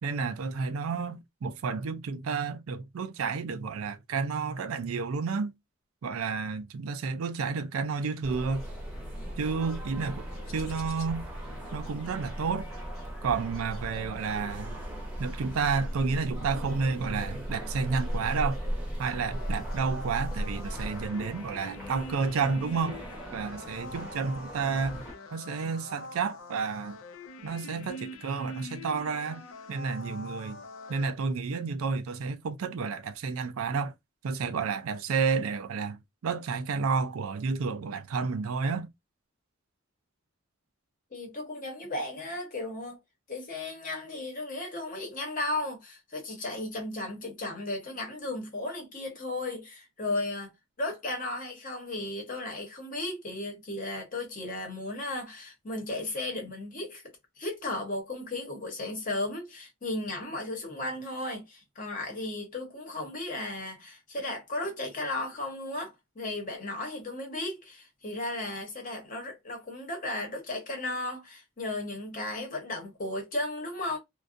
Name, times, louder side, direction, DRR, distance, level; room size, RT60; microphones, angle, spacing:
voice 1, 0.0-5.5 6.0-8.6 9.4-10.2 10.5-11.3 11.7-12.7 13.2-14.8 15.2-18.6 19.0-23.0 23.3-27.0 27.4-29.4 29.7-30.6 30.9-33.9 34.2-38.9, right 5 dB, 85° right, 0.4 m, -31 dB
sound 1, 8.2-21.1, equal, 85° left, 0.8 m, -37 dB
sound 2, 8.2-25.1, right 1 dB, 5° right, 0.8 m, -44 dB
sound 3, 19.1-31.0, left 1 dB, 70° left, 0.4 m, -44 dB
voice 2, 41.1-43.0 43.3-50.5 50.8-57.0 57.4-74.0, left 2 dB, 40° left, 1.0 m, -35 dB
2.5 x 2.3 x 2.5 m
head